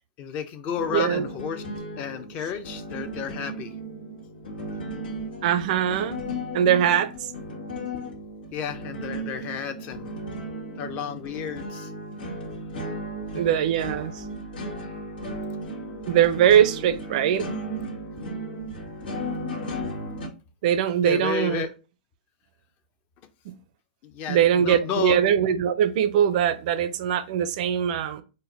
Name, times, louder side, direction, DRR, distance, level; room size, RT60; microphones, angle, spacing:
voice 1, 0.2-1.6 2.0-3.7 8.5-10.1 10.8-11.9 13.3-13.5 21.0-21.7 24.0-25.2, left 7 dB, 35° left, 0.5 m, -32 dB
sound 1, 0.7-20.3, equal, 80° left, 1.4 m, -35 dB
voice 2, 0.9-1.2 5.4-6.3 6.5-7.3 13.3-14.1 16.1-17.5 20.6-21.6 24.3-28.2, right 9 dB, 55° right, 0.4 m, -21 dB
4.1 x 2.1 x 3.9 m
hypercardioid pair, 135°, 5 cm